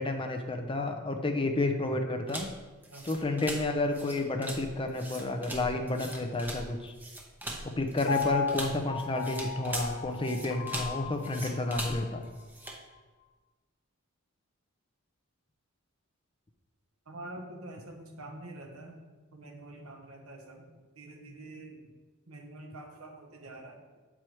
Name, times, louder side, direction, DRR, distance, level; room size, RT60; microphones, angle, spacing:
voice 1, 0.0-2.5 3.1-6.9 7.6-12.2, left 2 dB, 25° left, 5 dB, 0.6 m, -31 dB
sound 1, 2.3-12.8, right 1 dB, 10° right, 0.8 m, -41 dB
Piano, 8.1-12.2 12.7-12.8, left 6 dB, 55° left, 0.9 m, -36 dB
voice 2, 17.1-19.0 19.3-20.7 21.0-21.8 22.3-23.8, right 2 dB, 80° right, 2 dB, 1.2 m, -46 dB
7.6 x 4.8 x 4.5 m, 1.3 s
head